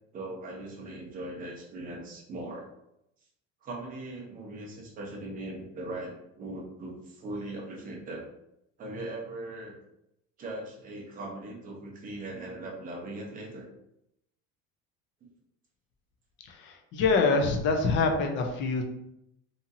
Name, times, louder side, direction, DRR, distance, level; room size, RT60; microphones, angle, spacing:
voice 1, 0.1-2.7 3.6-8.2 8.8-9.7 10.4-13.7, right 2 dB, 25° right, -1 dB, 0.6 m, -39 dB
voice 2, 16.5-18.9, left 4 dB, 40° left, 4 dB, 0.4 m, -25 dB
2.8 x 2.6 x 2.5 m, 0.80 s
cardioid pair, 165°, 31 cm